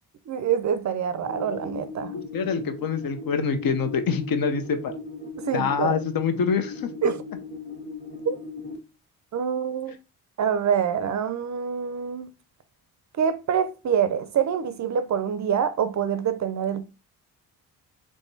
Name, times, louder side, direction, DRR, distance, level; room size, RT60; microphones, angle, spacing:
voice 1, 0.3-2.1 5.4-6.0 7.0-7.2 8.3-8.4 9.3-9.9 10.4-12.3 13.2-16.8, right 8 dB, 45° right, 0.4 m, -25 dB
sound 1, 1.2-8.8, left 4 dB, 25° left, 1.5 m, -38 dB
voice 2, 2.1-4.9 5.5-7.1, left 6 dB, 55° left, 0.7 m, -26 dB
3.5 x 3.1 x 2.6 m
supercardioid pair, 55°, 42 cm